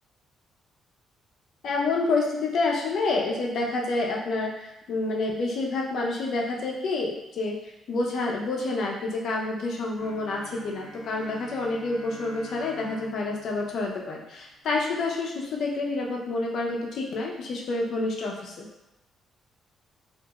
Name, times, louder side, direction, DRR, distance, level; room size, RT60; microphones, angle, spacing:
voice 1, 1.6-7.5 7.9-18.7, left 3 dB, 70° left, -2 dB, 0.6 m, -28 dB
Bowed string instrument, 10.0-14.9, left 1 dB, 5° left, 0.7 m, -46 dB
2.5 x 2.3 x 2.9 m, 0.91 s
cardioid pair, 90°, 0 cm